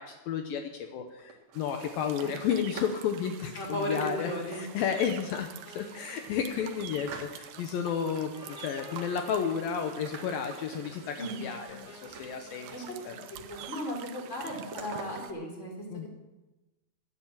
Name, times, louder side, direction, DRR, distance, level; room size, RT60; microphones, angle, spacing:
voice 1, 0.0-12.7 13.1-13.3 15.9-16.1, left 7 dB, 85° left, 5 dB, 2.0 m, -32 dB
sound 1, 1.1-3.0 3.3-3.7 4.5-5.3 5.8-5.9 6.2-7.8 8.1-9.6 9.9-13.1 13.3-14.0 14.2-15.1, right 4 dB, 50° right, 2.3 m, -47 dB
sound 2, 1.5-15.3, right 11 dB, 80° right, 2.2 m, -48 dB
voice 2, 3.5-4.6 11.2-11.5 12.7-12.8 13.5-16.1, left 1 dB, 15° left, 0 dB, 3.2 m, -35 dB
Wind instrument woodwind instrument, 5.7-13.6, left 3 dB, 40° left, 6.5 m, -52 dB
12.5 x 11.5 x 7.4 m, 1.1 s
omnidirectional pair, 5.5 m